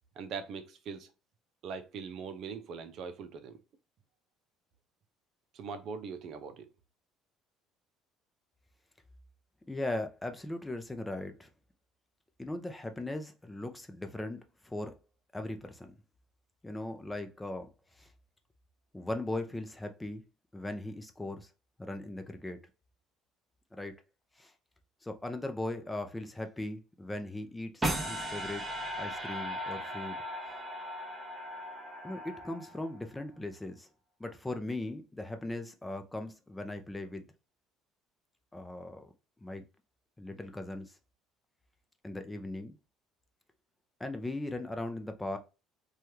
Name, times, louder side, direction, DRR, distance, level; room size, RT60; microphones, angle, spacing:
voice 1, 0.2-1.1 1.6-3.6 5.5-6.7, right 5 dB, 60° right, 0.6 m, -41 dB
voice 2, 9.7-11.5 12.4-14.9 15.3-15.9 16.6-17.7 18.0-18.1 18.9-20.2 20.5-21.5 21.8-22.6 23.7-24.0 24.4-24.5 25.0-28.6 29.0-30.2 32.0-33.9 34.2-37.3 38.5-39.1 39.4-39.6 40.2-40.9 42.0-42.8 44.0-45.4, left 2 dB, 10° left, 0.6 m, -38 dB
sound 1, 27.8-33.0, equal, 20° right, 0.9 m, -37 dB
3.1 x 2.4 x 2.7 m
supercardioid pair, 95°, 0 cm